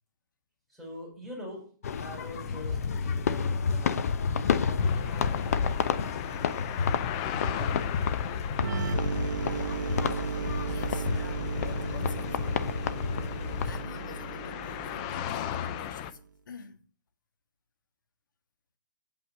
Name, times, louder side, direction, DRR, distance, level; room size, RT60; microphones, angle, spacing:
voice 1, 0.7-1.7 2.0-5.7 6.0-6.6 7.3-9.0, equal, ahead, 4.5 m, -45 dB
sound 1, 1.8-13.8, left 6 dB, 45° left, 0.9 m, -30 dB
sound 2, 4.8-16.1, left 11 dB, 20° left, 0.5 m, -38 dB
sound 3, 8.6-16.2, right 5 dB, 65° right, 0.9 m, -35 dB
voice 2, 10.3-12.9 13.6-16.2 16.5-16.8, left 6 dB, 70° left, 1.9 m, -48 dB
8.6 x 7.9 x 6.7 m
hypercardioid pair, 170°, 11 cm